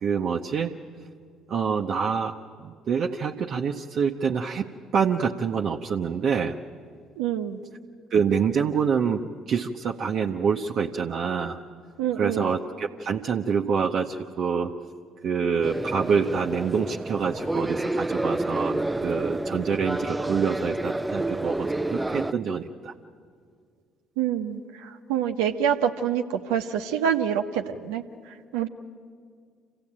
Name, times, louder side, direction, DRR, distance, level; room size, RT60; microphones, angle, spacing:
voice 1, 0.0-0.7 1.5-2.3 2.6-6.6 8.1-9.2 9.5-11.6 12.2-14.7 15.2-22.9, right 6 dB, 55° right, 1 dB, 0.8 m, -26 dB
voice 2, 7.2-7.6 12.0-12.5 24.2-28.0 28.5-28.7, right 9 dB, 75° right, 6 dB, 0.9 m, -26 dB
sound 1, 15.6-22.3, right 2 dB, 10° right, 0.5 m, -29 dB
26.5 x 16.0 x 8.7 m, 2.1 s
hypercardioid pair, 55°, 0 cm